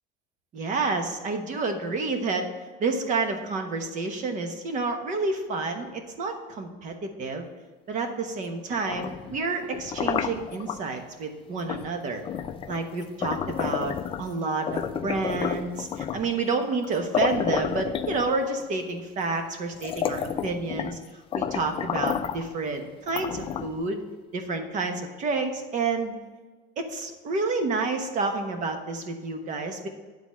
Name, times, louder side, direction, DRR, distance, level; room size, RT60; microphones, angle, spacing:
voice 1, 0.5-2.5 2.8-7.5 7.9-12.2 12.7-21.0 21.3-24.0 24.3-26.2 26.8-29.9, right 3 dB, 40° right, 5 dB, 1.1 m, -29 dB
sound 1, 8.7-10.8 11.7-11.9 12.2-14.3 14.7-16.3 16.8-16.9 17.1-18.6 19.3-19.4 19.7-21.0 21.3-22.5 23.1-23.9, left 8 dB, 25° left, 0.4 m, -30 dB
10.0 x 4.0 x 7.3 m, 1.4 s
cardioid pair, 160°, 20 cm